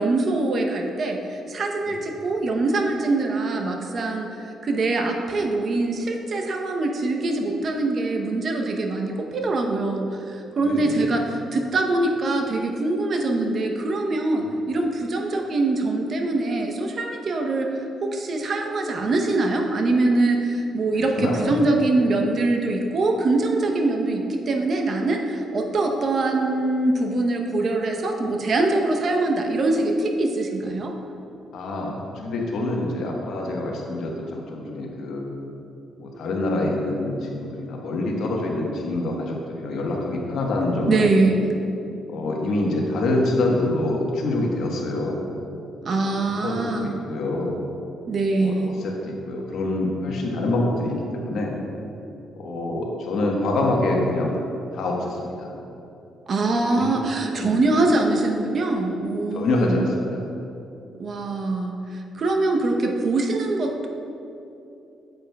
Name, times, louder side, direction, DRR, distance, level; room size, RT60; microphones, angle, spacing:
voice 1, 0.0-17.7 18.0-30.9 40.9-41.5 45.8-46.9 48.1-48.8 56.3-59.9 61.0-63.9, right 2 dB, 50° right, 3 dB, 0.8 m, -23 dB
voice 2, 10.6-11.1 14.4-14.5 20.9-21.5 31.5-35.2 36.0-41.2 42.1-45.2 46.0-46.1 46.4-47.6 48.4-48.5 48.8-51.5 52.4-54.3 54.7-55.5 56.7-56.9 57.5-57.6 59.3-60.2, left 2 dB, 75° left, -1 dB, 1.2 m, -26 dB
8.8 x 8.0 x 2.3 m, 2.8 s
cardioid pair, 90°, 0 cm